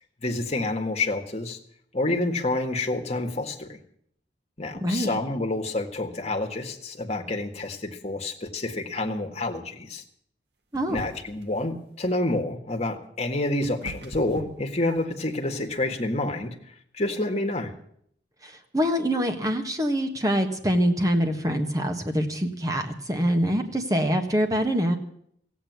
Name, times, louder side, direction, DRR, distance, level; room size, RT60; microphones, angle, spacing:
voice 1, 0.2-1.6 1.9-3.8 4.6-10.0 10.9-16.6 16.9-17.7, left 2 dB, 35° left, 3 dB, 1.7 m, -28 dB
voice 2, 4.8-5.2 10.7-11.0 18.7-25.0, equal, 20° right, 5 dB, 1.5 m, -24 dB
sound 1, 10.7-11.5 13.0-15.3, right 1 dB, 65° right, 1.4 m, -41 dB
16.0 x 8.6 x 9.4 m, 0.67 s
head